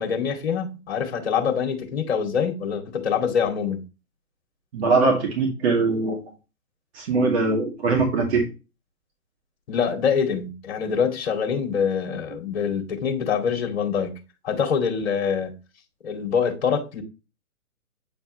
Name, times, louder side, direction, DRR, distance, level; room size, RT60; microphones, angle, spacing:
voice 1, 0.0-3.8 9.7-14.2 14.4-15.6 16.0-17.0, left 6 dB, 45° left, 2.3 m, -25 dB
voice 2, 4.7-6.2 6.9-8.4, right 3 dB, 45° right, 2.3 m, -21 dB
8.8 x 4.5 x 2.9 m
figure-of-eight pair, 135°, 45 cm